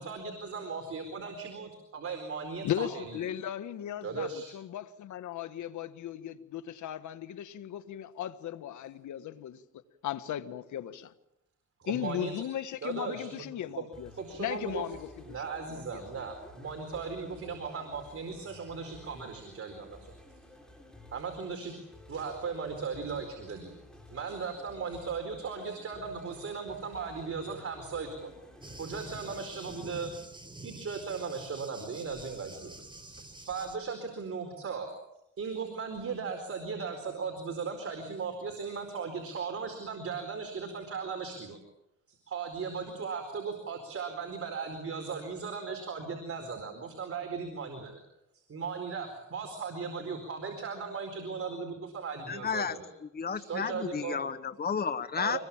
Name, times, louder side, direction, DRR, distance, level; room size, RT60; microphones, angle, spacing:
voice 1, 0.0-3.2 4.0-4.5 11.8-12.3 12.8-13.4 13.8-13.9 14.2-14.8 15.3-20.1 21.1-21.7 22.1-23.7 24.1-28.3 28.8-30.1 30.6-32.7 33.0-34.9 35.4-41.6 42.3-48.0 48.5-52.9 53.3-54.2 55.2-55.4, right 5 dB, 50° right, 4.5 m, -37 dB
voice 2, 2.6-9.6 10.0-11.1 11.9-14.1 14.4-16.1, left 11 dB, 75° left, 1.6 m, -37 dB
sound 1, 13.9-29.9, left 1 dB, ahead, 7.2 m, -53 dB
Thunder, 28.6-33.8, right 2 dB, 15° right, 4.4 m, -47 dB
voice 3, 52.3-55.4, left 6 dB, 30° left, 1.3 m, -32 dB
25.5 x 21.5 x 7.3 m
cardioid pair, 90°, 30 cm